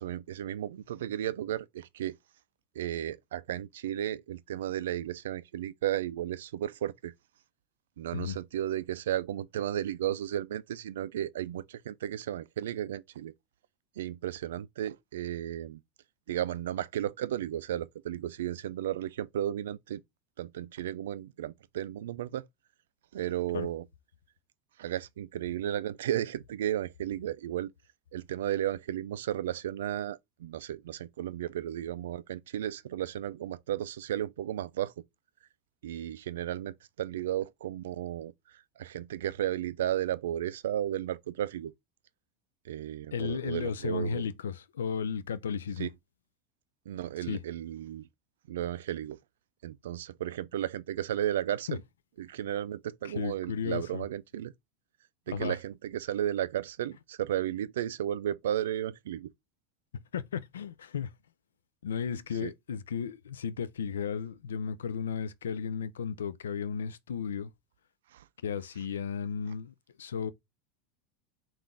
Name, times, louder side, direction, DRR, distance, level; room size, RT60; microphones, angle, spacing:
voice 1, 0.0-2.2 2.8-7.1 8.0-13.3 14.0-15.8 16.3-20.0 20.4-22.5 23.1-23.8 24.8-27.7 28.1-34.9 35.8-38.3 38.8-41.7 42.7-44.2 45.8-45.9 46.9-48.1 48.5-49.2 49.6-51.7 52.2-54.5 55.3-59.3 62.4-62.5 68.1-68.2, right 11 dB, 80° right, 0.3 m, -34 dB
voice 2, 43.1-45.9 47.3-47.4 51.7-51.8 53.0-54.0 55.3-55.6 60.1-61.1 61.8-67.5 68.4-70.3, left 6 dB, 90° left, 0.4 m, -34 dB
3.7 x 2.5 x 3.6 m
hypercardioid pair, 95°, 0 cm